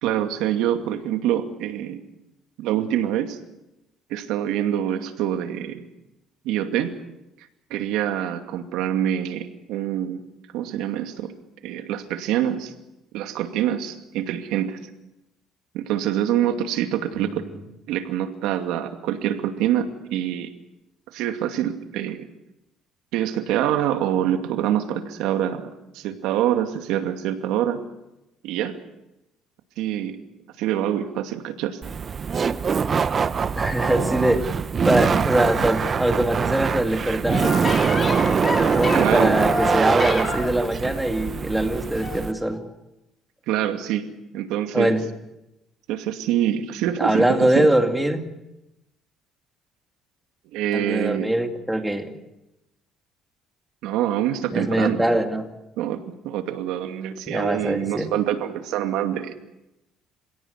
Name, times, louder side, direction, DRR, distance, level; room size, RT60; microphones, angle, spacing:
voice 1, 0.0-2.0 2.6-3.4 4.1-5.9 6.4-6.9 7.7-10.2 10.5-11.3 11.6-12.7 13.1-14.8 15.7-17.4 17.9-20.5 21.1-22.2 23.1-25.7 25.9-27.8 28.4-28.8 29.8-30.2 30.6-31.8 38.9-39.4 43.5-44.0 44.3-44.9 45.9-47.7 50.5-51.3 53.8-55.0 55.8-59.3, right 11 dB, 90° right, 6 dB, 2.5 m, -25 dB
Laughter, 31.8-42.3, right 6 dB, 35° right, 0.9 m, -23 dB
voice 2, 33.6-34.5 34.8-37.6 38.6-42.6 44.7-45.0 47.0-48.3 50.7-52.2 54.5-55.5 57.3-58.1, right 1 dB, 5° right, 5 dB, 2.5 m, -22 dB
sound 1, 37.3-40.7 42.0-42.2 42.5-42.6, left 3 dB, 25° left, 3.5 m, -28 dB
27.5 x 17.0 x 8.3 m, 0.94 s
cardioid pair, 125°, 0 cm